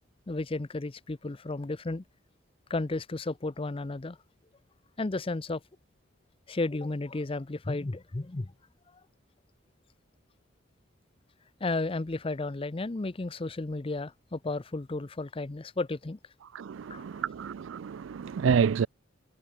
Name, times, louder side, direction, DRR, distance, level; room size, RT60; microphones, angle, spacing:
voice 1, 0.3-2.0 2.7-4.2 5.0-5.6 6.5-8.5 11.6-16.2 16.9-17.0, left 2 dB, 25° left, 0.6 m, -33 dB
voice 2, 16.5-18.9, right 6 dB, 70° right, 0.4 m, -28 dB
head